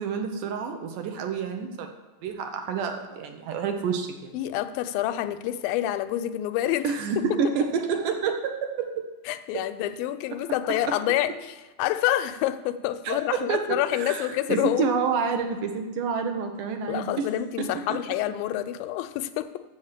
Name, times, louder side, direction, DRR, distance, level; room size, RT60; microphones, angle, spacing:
voice 1, 0.0-1.9 2.2-4.4 6.8-9.1 9.5-9.6 10.9-11.0 13.1-17.3 17.6-17.8, right 6 dB, 75° right, 5 dB, 2.3 m, -28 dB
voice 2, 4.3-6.9 9.3-14.9 16.9-19.6, left 13 dB, 85° left, 10 dB, 2.3 m, -27 dB
7.8 x 7.3 x 7.4 m, 1.1 s
omnidirectional pair, 4.1 m